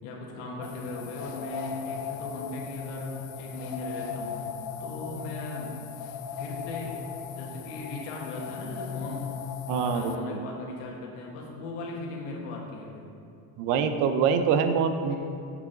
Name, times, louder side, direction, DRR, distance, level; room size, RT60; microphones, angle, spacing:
voice 1, 0.0-4.4 4.8-5.8 6.4-7.0 7.3-9.3 9.7-13.1, left 2 dB, 90° left, -2 dB, 1.5 m, -38 dB
sound 1, 0.6-10.2, left 7 dB, 45° left, 0.4 m, -37 dB
voice 2, 9.7-10.5 13.6-15.2, right 6 dB, 50° right, 9 dB, 0.5 m, -25 dB
7.5 x 6.4 x 3.8 m, 2.6 s
cardioid pair, 165°, 42 cm